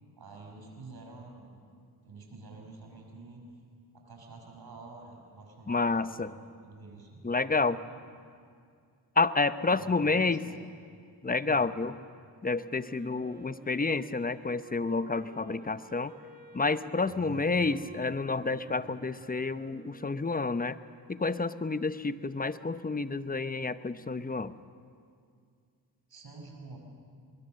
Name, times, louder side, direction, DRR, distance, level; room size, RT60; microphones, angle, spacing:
voice 1, 0.2-1.6 2.0-3.4 3.9-7.2 7.7-8.2 9.7-10.6 11.4-11.7 17.0-17.6 18.7-18.9 26.1-26.8, right 3 dB, 65° right, 1 dB, 5.9 m, -48 dB
voice 2, 5.7-6.3 7.2-7.8 9.2-10.4 11.2-11.9 12.4-16.1 16.5-20.8 21.1-24.5, left 3 dB, 20° left, 13 dB, 0.8 m, -29 dB
Wind instrument woodwind instrument, 12.5-20.9, right 2 dB, 20° right, 2.2 m, -52 dB
24.5 x 21.0 x 6.6 m, 2.2 s
cardioid pair, 55°, 40 cm